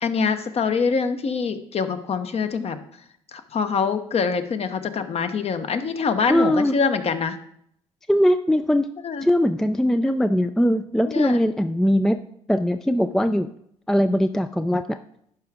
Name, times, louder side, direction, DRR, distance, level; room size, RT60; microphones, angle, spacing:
voice 1, 0.0-2.8 3.3-7.4 9.0-9.3 11.1-11.4, left 5 dB, 40° left, 9 dB, 0.9 m, -24 dB
voice 2, 6.3-6.8 8.1-8.9 9.2-12.2 12.5-13.5 13.9-15.0, equal, 5° left, 9 dB, 0.4 m, -20 dB
11.0 x 4.7 x 3.6 m, 0.71 s
hypercardioid pair, 60°, 16 cm